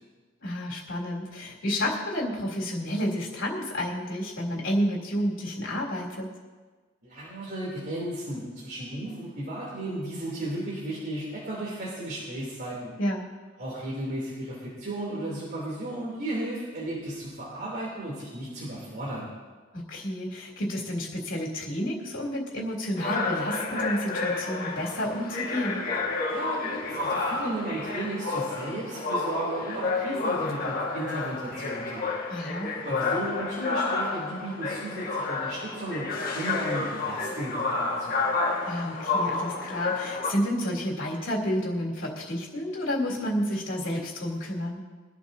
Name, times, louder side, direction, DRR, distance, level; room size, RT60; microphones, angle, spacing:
voice 1, 0.4-6.3 13.0-13.3 19.7-25.8 32.3-32.7 38.6-44.8, equal, 70° left, -2 dB, 3.3 m, -30 dB
voice 2, 7.0-12.9 13.6-19.3 26.3-32.2 32.8-38.3, right 1 dB, 55° right, -6 dB, 3.2 m, -34 dB
sound 1, 23.0-40.3, left 3 dB, 50° left, 1.9 m, -30 dB
23.5 x 11.5 x 2.8 m, 1.4 s
head